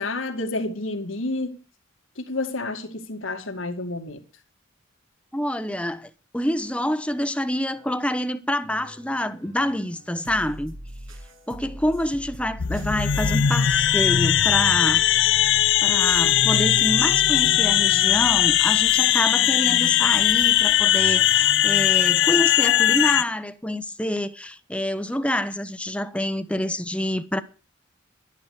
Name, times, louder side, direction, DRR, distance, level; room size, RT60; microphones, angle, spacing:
voice 1, 0.0-1.6 2.2-4.2, left 2 dB, 80° left, 2.3 m, -30 dB
voice 2, 5.3-10.7 11.5-15.0 15.8-27.4, left 1 dB, 5° left, 1.0 m, -27 dB
sound 1, 7.8-8.3 8.6-17.5, right 1 dB, 85° right, 7.0 m, -42 dB
sound 2, 12.6-23.2, left 12 dB, 65° left, 0.6 m, -19 dB
11.5 x 11.0 x 6.4 m
head